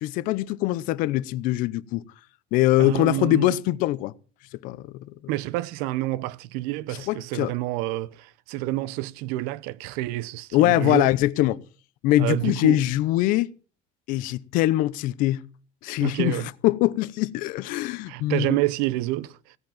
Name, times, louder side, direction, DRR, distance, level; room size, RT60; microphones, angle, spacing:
voice 1, 0.0-2.1 2.5-4.1 4.6-4.9 7.1-7.5 10.5-11.6 12.0-13.5 14.1-15.4 15.8-18.5, left 16 dB, 65° left, 0.7 m, -23 dB
voice 2, 2.8-3.6 5.3-11.1 12.2-12.9 16.0-16.5 18.1-19.5, right 17 dB, 85° right, 0.7 m, -28 dB
16.5 x 8.0 x 7.1 m
cardioid pair, 160°, 15 cm